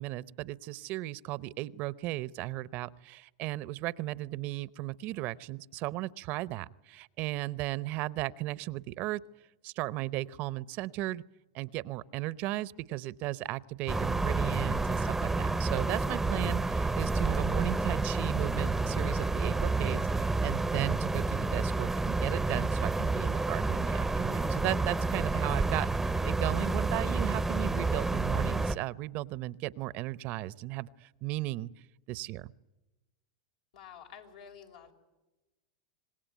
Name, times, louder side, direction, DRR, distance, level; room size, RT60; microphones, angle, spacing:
voice 1, 0.0-9.2 9.6-11.2 11.5-31.7 32.1-32.5, right 17 dB, 50° right, 19 dB, 0.8 m, -36 dB
sound 1, 13.9-28.8, right 3 dB, 5° right, 0.8 m, -29 dB
voice 2, 33.7-34.9, left 8 dB, 75° left, 4 dB, 4.9 m, -50 dB
26.0 x 20.0 x 9.2 m, 1.0 s
hypercardioid pair, 105°, 4 cm